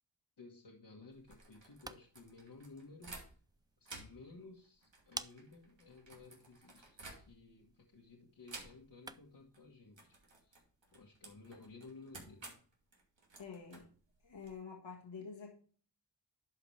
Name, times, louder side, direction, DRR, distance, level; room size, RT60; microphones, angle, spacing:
voice 1, 0.4-3.2 3.8-10.6 10.9-12.5, left 3 dB, 65° left, -1 dB, 1.5 m, -56 dB
sound 1, 1.1-3.5 3.8-7.6 8.5-9.1 9.4-9.6 9.9-14.5, right 3 dB, 80° right, 2.7 m, -54 dB
sound 2, 1.5-9.5, right 2 dB, 10° right, 0.4 m, -54 dB
voice 2, 13.4-13.9 14.2-15.5, left 5 dB, 85° left, -1 dB, 1.8 m, -48 dB
11.0 x 5.8 x 3.3 m, 0.43 s
cardioid pair, 45°, 44 cm